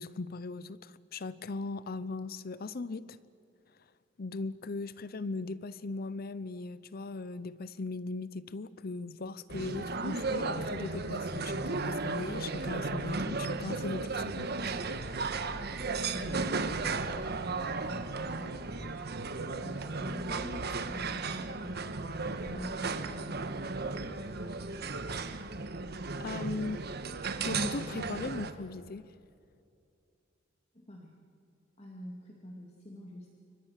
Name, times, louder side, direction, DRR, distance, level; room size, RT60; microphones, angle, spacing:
voice 1, 0.0-3.2 4.2-14.7 26.2-26.8 27.4-29.1, left 3 dB, 50° left, 16 dB, 0.6 m, -39 dB
sound 1, 9.5-28.5, right 3 dB, 55° right, 1.4 m, -35 dB
voice 2, 15.5-18.6 19.6-23.5 30.7-31.1 31.8-33.3, equal, 35° left, -1 dB, 2.5 m, -47 dB
29.0 x 25.0 x 6.5 m, 2.5 s
head